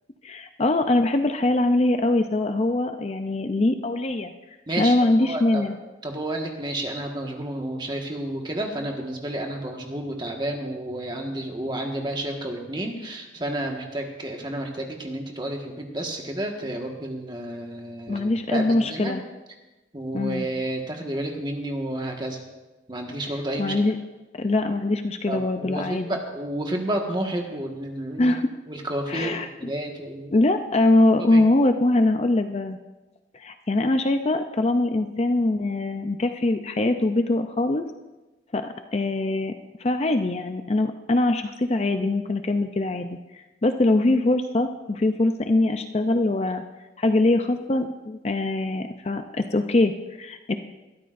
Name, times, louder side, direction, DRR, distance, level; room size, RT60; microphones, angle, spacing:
voice 1, 0.2-4.3 4.8-5.7 18.1-19.2 20.1-20.5 23.6-24.0 24.3-26.2 28.2-28.5 29.1-29.5 30.3-32.8 33.3-37.8 38.5-39.5 39.8-46.6 47.0-49.9 50.2-50.5, left 2 dB, 35° left, 7 dB, 0.5 m, -23 dB
voice 2, 4.7-5.6 6.0-19.2 19.9-22.4 22.9-23.8 25.3-28.4 28.7-30.3 31.3-31.5, right 1 dB, 25° right, 1 dB, 1.6 m, -31 dB
21.5 x 13.0 x 2.6 m, 1.1 s
head